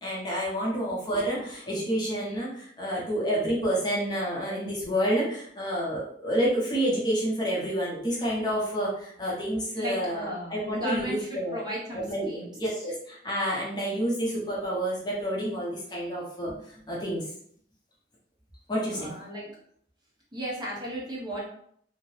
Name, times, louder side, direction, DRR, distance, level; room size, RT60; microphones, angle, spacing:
voice 1, 0.0-11.6 11.9-17.2 18.7-19.1, equal, 25° left, -5 dB, 0.7 m, -29 dB
voice 2, 9.8-12.5 18.9-19.5 20.3-21.5, equal, 25° right, -6 dB, 0.8 m, -35 dB
2.7 x 2.1 x 3.1 m, 0.65 s
head